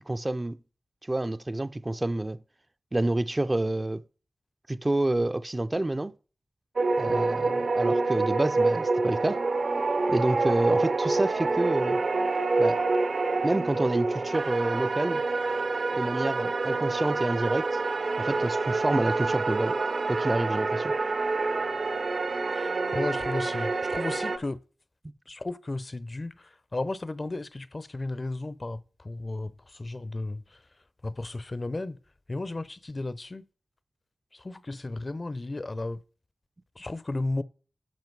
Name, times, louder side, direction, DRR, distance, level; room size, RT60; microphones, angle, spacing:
voice 1, 0.1-0.6 1.1-2.4 2.9-4.0 4.7-6.1 7.0-9.4 10.1-12.0 12.6-12.8 13.4-15.2 15.9-17.8 18.2-19.8 20.1-20.9, right 2 dB, 25° right, 0.4 m, -28 dB
sound 1, 6.8-24.4, right 3 dB, 65° right, 0.7 m, -27 dB
voice 2, 22.5-24.6 25.3-30.6 31.0-32.0 32.3-33.5 34.3-36.0 36.8-37.4, left 2 dB, 35° left, 0.5 m, -34 dB
10.5 x 5.8 x 4.6 m
wide cardioid pair, 75°, 0 cm